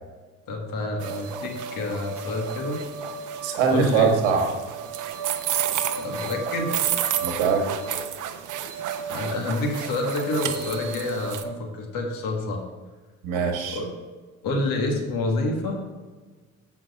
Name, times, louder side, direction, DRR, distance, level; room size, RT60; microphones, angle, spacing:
voice 1, 0.5-2.8 3.7-4.1 5.9-6.8 9.0-12.6 13.7-13.9 14.4-15.8, left 2 dB, 60° left, 2 dB, 1.7 m, -28 dB
sound 1, 1.0-11.4, right 7 dB, 50° right, 0.8 m, -30 dB
voice 2, 3.4-4.5 7.2-7.6 13.2-13.8, right 6 dB, 70° right, 2 dB, 1.2 m, -22 dB
7.2 x 5.9 x 4.2 m, 1.4 s
hypercardioid pair, 55°, 39 cm